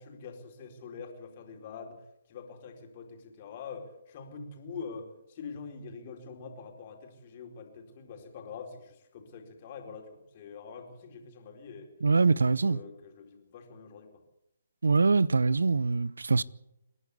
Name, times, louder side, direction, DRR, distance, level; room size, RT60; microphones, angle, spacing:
voice 1, 0.0-11.9 12.3-14.2, left 5 dB, 40° left, 4.4 m, -45 dB
voice 2, 12.0-12.8 14.8-16.4, right 4 dB, 75° right, 0.7 m, -24 dB
29.0 x 11.0 x 8.5 m
figure-of-eight pair, 140°, 0 cm